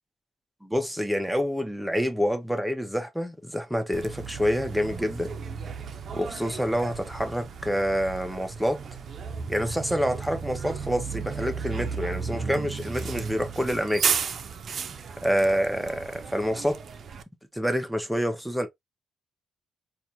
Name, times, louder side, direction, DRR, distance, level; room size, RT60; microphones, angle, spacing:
voice 1, 0.6-5.3 6.1-8.8 9.5-14.0 15.2-16.8 17.5-18.7, equal, 5° right, 0.7 m, -27 dB
Bus, 3.9-17.2, right 6 dB, 50° right, 0.5 m, -34 dB
4.2 x 2.5 x 2.7 m
cardioid pair, 90°, 0 cm